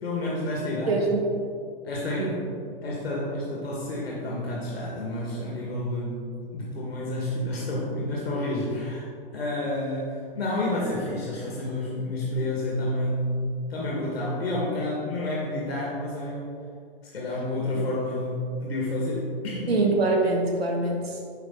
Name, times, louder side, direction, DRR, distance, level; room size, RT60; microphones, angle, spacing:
voice 1, 0.0-1.0 1.8-2.4 2.8-13.4 13.7-16.5 17.1-19.8, left 1 dB, 90° left, -5 dB, 2.1 m, -30 dB
voice 2, 0.9-1.3 2.2-2.5 17.7-17.8 19.7-21.2, right 2 dB, 85° right, 0 dB, 1.8 m, -24 dB
10.0 x 5.5 x 4.0 m, 2.4 s
hypercardioid pair, 130°, 30 cm